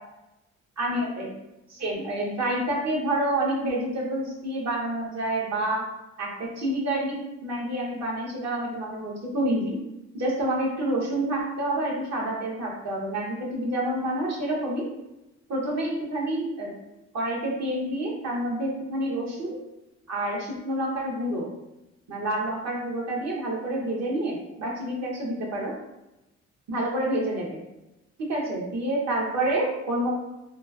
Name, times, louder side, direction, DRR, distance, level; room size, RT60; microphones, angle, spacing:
voice 1, 0.8-1.3 1.7-5.8 6.2-9.8 10.1-14.9 15.5-16.7 17.1-19.6 20.1-21.5 22.1-25.7 26.7-27.6 28.2-30.1, right 1 dB, 60° right, -3 dB, 0.9 m, -28 dB
3.0 x 2.3 x 2.3 m, 0.96 s
cardioid pair, 90°, 30 cm